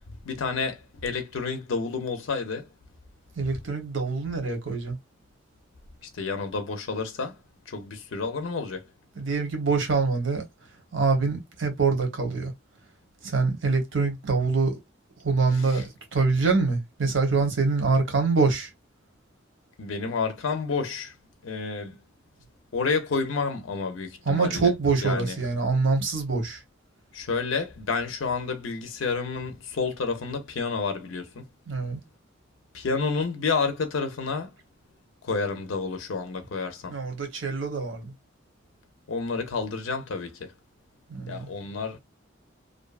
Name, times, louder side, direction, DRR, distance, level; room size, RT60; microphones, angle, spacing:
voice 1, 0.3-2.7 6.1-7.4 7.7-8.8 19.8-21.1 21.4-22.0 22.7-24.7 25.0-25.3 27.1-31.4 32.7-34.5 35.2-36.9 39.1-40.5 41.3-42.0, left 4 dB, 90° left, 0.5 m, -29 dB
voice 2, 3.4-5.0 9.1-10.4 10.9-12.5 13.2-14.8 15.2-18.7 24.2-26.6 31.7-32.0 36.9-38.1 41.1-41.5, right 4 dB, 80° right, 0.9 m, -25 dB
2.5 x 2.2 x 2.3 m
head